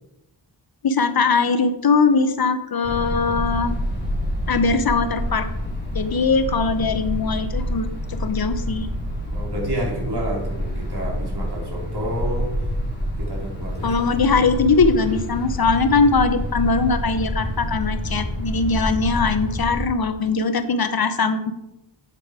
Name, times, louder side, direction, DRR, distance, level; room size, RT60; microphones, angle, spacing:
voice 1, 0.8-3.7 4.5-5.5 5.9-8.9 13.8-21.5, left 4 dB, 55° left, 10 dB, 0.8 m, -21 dB
sound 1, 2.8-19.8, equal, 25° left, 3.5 m, -27 dB
voice 2, 9.3-12.5 13.2-14.1, right 1 dB, 60° right, -2 dB, 3.6 m, -30 dB
8.5 x 8.4 x 4.9 m, 0.91 s
wide cardioid pair, 115°, 45 cm